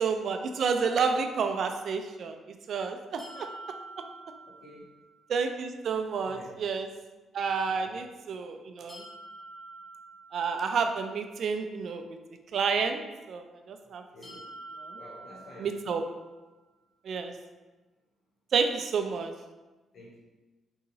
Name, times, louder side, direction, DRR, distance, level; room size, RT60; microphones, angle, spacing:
voice 1, 0.0-2.3 2.7-3.5 5.3-6.9 7.3-9.0 10.3-12.1 12.5-13.0 13.3-14.0 14.8-15.0 15.6-16.0 17.0-17.3 18.5-19.3, right 5 dB, 60° right, 6 dB, 0.3 m, -30 dB
sound 1, 3.2-5.1 8.9-11.0 14.2-16.3, right 2 dB, 25° left, 1.2 m, -47 dB
voice 2, 4.4-4.9 6.3-6.5 7.3-7.9 13.9-14.5 14.9-15.8 19.9-20.2, left 1 dB, 65° left, -5 dB, 0.7 m, -50 dB
3.9 x 2.7 x 2.7 m, 1.2 s
cardioid pair, 90°, 0 cm